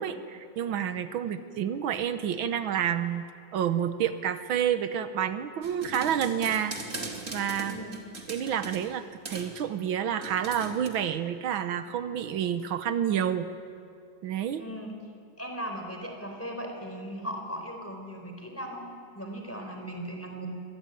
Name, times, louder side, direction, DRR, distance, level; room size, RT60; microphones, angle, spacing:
voice 1, 0.0-3.2 3.5-6.8 7.3-7.8 8.3-13.5 14.2-14.6, right 9 dB, 85° right, 10 dB, 1.8 m, -29 dB
sound 1, 5.6-8.9 9.3-9.5 10.2-10.9, right 3 dB, 40° right, 2.7 m, -39 dB
voice 2, 7.7-8.0 14.5-14.9 15.4-18.8 19.1-20.5, equal, 5° left, 2 dB, 4.0 m, -38 dB
25.0 x 19.0 x 9.1 m, 2.3 s
omnidirectional pair, 2.2 m